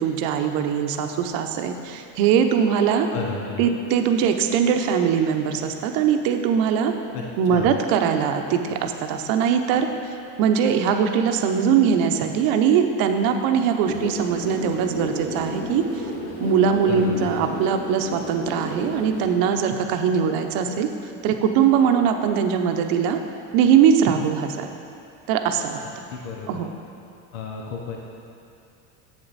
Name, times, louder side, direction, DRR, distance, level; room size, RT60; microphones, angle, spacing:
voice 1, 0.0-3.1 3.6-6.9 7.4-9.9 10.4-16.1 16.4-20.9 21.2-23.2 23.5-24.7 25.3-26.1 26.5-26.7, right 7 dB, 65° right, 6 dB, 0.8 m, -21 dB
voice 2, 3.1-3.7 7.1-7.2 7.5-7.7 16.9-17.5 26.1-26.7 27.3-28.0, left 5 dB, 75° left, -1 dB, 1.0 m, -32 dB
sound 1, 13.8-19.3, equal, 90° left, 1.8 m, -33 dB
8.1 x 6.8 x 4.0 m, 2.5 s
supercardioid pair, 120°, 38 cm